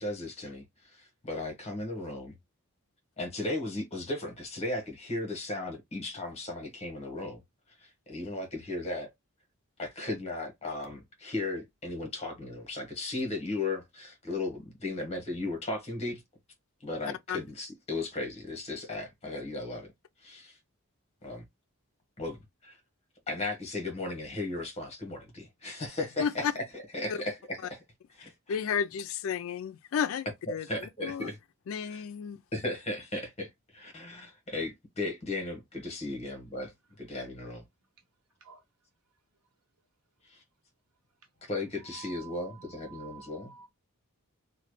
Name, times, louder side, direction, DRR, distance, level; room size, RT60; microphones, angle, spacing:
voice 1, 0.0-2.4 3.2-7.4 7.8-9.1 9.8-16.2 16.8-19.9 20.2-20.6 21.2-21.4 22.2-22.8 23.3-27.8 28.2-28.6 30.5-31.4 31.9-32.0 32.5-36.7 37.0-37.6 40.2-40.4 41.5-43.5, left 2 dB, 30° left, 1.1 m, -36 dB
voice 2, 26.2-26.5 27.1-27.2 28.5-31.3 31.7-32.4, left 7 dB, 60° left, 0.3 m, -32 dB
voice 3, 41.9-43.7, right 8 dB, 85° right, 1.1 m, -50 dB
3.0 x 2.2 x 3.1 m
head